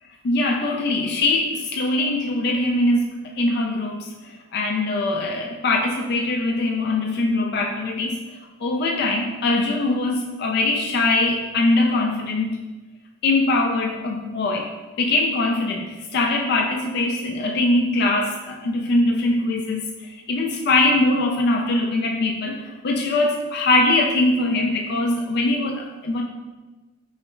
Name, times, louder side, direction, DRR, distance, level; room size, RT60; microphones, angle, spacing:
voice 1, 0.2-12.6 13.2-14.7 15.0-26.2, left 2 dB, 55° left, 1 dB, 0.3 m, -22 dB
5.5 x 2.0 x 4.3 m, 1.2 s
head